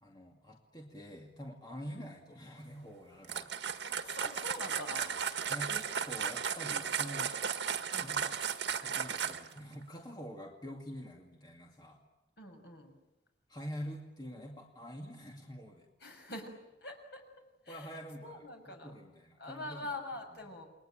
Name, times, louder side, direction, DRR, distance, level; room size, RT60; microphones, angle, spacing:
voice 1, 0.0-3.5 5.5-7.4 8.0-8.4 8.8-12.0 13.5-15.9 17.7-19.8 20.3-20.5, equal, 20° left, 0 dB, 2.4 m, -46 dB
sound 1, 3.2-9.6, right 7 dB, 75° right, 1.7 m, -35 dB
voice 2, 4.0-5.2 7.9-8.2 12.4-12.9 16.0-16.5 16.8-17.2 17.6-17.9 18.2-18.9 19.4-20.7, left 2 dB, 60° left, 3 dB, 6.3 m, -44 dB
29.5 x 22.0 x 9.0 m, 1.0 s
head